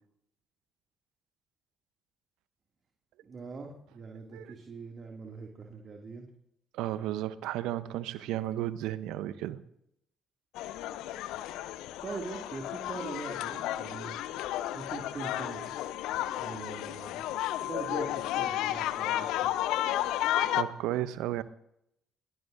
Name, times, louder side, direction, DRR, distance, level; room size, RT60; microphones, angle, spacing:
voice 1, 3.2-6.3 12.0-14.1 14.7-15.7 16.3-17.3 17.6-19.5, right 4 dB, 45° right, 1 dB, 2.5 m, -42 dB
voice 2, 6.7-9.6 20.4-21.4, right 13 dB, 70° right, 15 dB, 0.8 m, -33 dB
sound 1, 10.6-20.6, left 13 dB, 70° left, 0.7 m, -32 dB
22.5 x 21.0 x 2.7 m, 0.77 s
hypercardioid pair, 45°, 0 cm